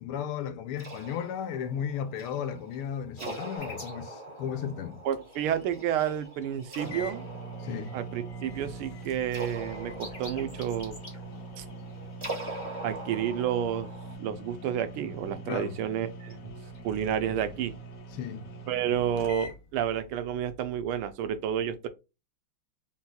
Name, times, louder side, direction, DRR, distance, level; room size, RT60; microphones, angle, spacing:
voice 1, 0.0-5.0 7.6-7.9 15.4-15.8 18.2-18.4, left 8 dB, 80° left, 1.6 m, -35 dB
sound 1, 0.8-14.1, right 2 dB, 15° right, 1.1 m, -43 dB
sound 2, 3.5-7.2 7.6-8.0 8.2-13.5 16.0-16.3 16.7-17.4, left 2 dB, 25° left, 1.3 m, -51 dB
voice 2, 5.0-7.2 7.9-10.9 11.6-11.7 12.8-13.9 14.2-16.5 16.8-17.7 18.7-21.9, right 9 dB, 80° right, 1.5 m, -30 dB
sound 3, 6.4-6.5 6.8-19.6, right 2 dB, 60° left, 1.3 m, -43 dB
4.2 x 3.9 x 2.3 m
omnidirectional pair, 2.4 m